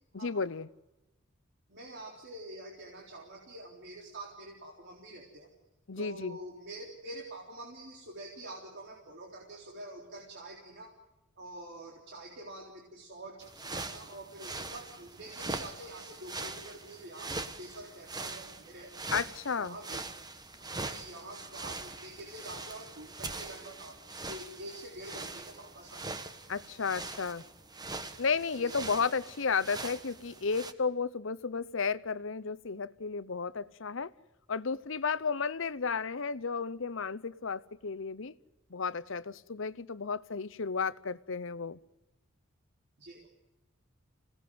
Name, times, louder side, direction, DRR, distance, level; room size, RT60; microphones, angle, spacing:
voice 1, 0.1-0.7 5.9-6.4 19.1-19.8 26.5-27.4 28.2-34.1 34.5-38.3 38.7-41.8, left 5 dB, 70° left, 0.9 m, -33 dB
voice 2, 1.7-5.5 6.0-11.0 11.4-18.9 19.6-20.0 20.6-24.0 24.2-26.0 28.6-28.7 29.0-29.1 43.0-43.3, right 1 dB, 60° right, 3.8 m, -46 dB
sound 1, 13.4-30.7, right 3 dB, 20° right, 1.5 m, -42 dB
27.0 x 18.0 x 9.5 m
head